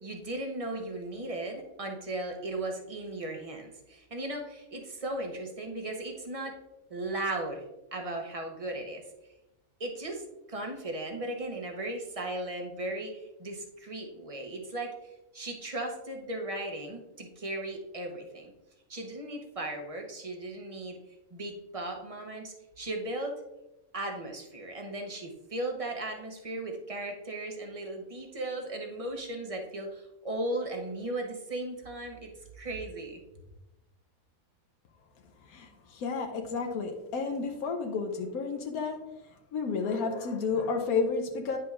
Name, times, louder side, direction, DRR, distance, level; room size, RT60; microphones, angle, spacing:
voice 1, 0.0-6.5 6.9-7.6 7.9-9.0 9.8-14.9 15.3-18.5 18.9-21.0 21.3-23.3 23.9-33.2, right 1 dB, 30° right, 3 dB, 0.8 m, -36 dB
voice 2, 35.5-39.0 39.5-41.6, left 4 dB, 85° left, 4 dB, 1.2 m, -31 dB
9.2 x 6.1 x 2.4 m, 0.98 s
omnidirectional pair, 1.5 m